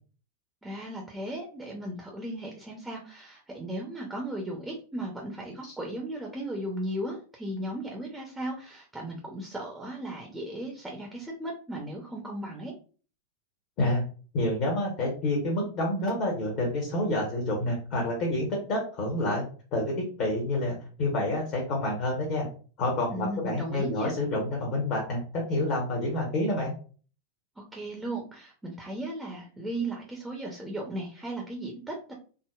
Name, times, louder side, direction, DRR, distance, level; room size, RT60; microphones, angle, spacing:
voice 1, 0.6-12.7 23.1-24.1 27.6-32.1, right 1 dB, 10° right, 0 dB, 0.6 m, -36 dB
voice 2, 14.3-19.4 19.7-22.4 22.8-26.7, left 1 dB, 40° left, -2 dB, 0.9 m, -28 dB
3.7 x 2.0 x 2.4 m, 0.39 s
figure-of-eight pair, 90°, 0 cm